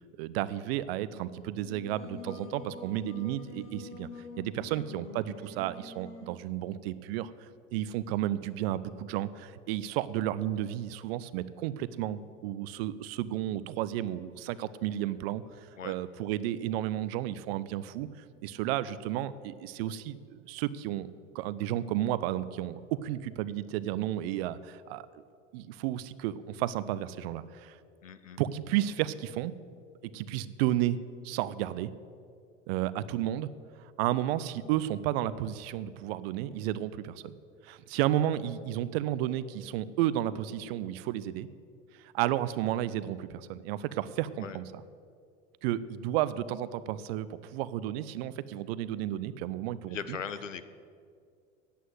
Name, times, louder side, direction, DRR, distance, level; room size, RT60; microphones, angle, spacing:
voice 1, 0.2-4.1 4.4-7.3 7.7-15.4 15.8-18.1 18.4-25.1 25.5-27.8 28.4-29.5 30.1-31.0 31.2-31.9 32.7-33.5 34.0-37.3 37.6-41.5 42.1-44.8 45.6-50.2, right 13 dB, 55° right, 16 dB, 0.6 m, -32 dB
Singing, 1.6-6.4, left 3 dB, 35° left, 2.5 m, -46 dB
voice 2, 28.0-28.4 44.4-44.6 49.9-50.7, left 7 dB, 85° left, 12 dB, 0.6 m, -39 dB
9.3 x 8.4 x 7.8 m, 2.3 s
figure-of-eight pair, 75°, 37 cm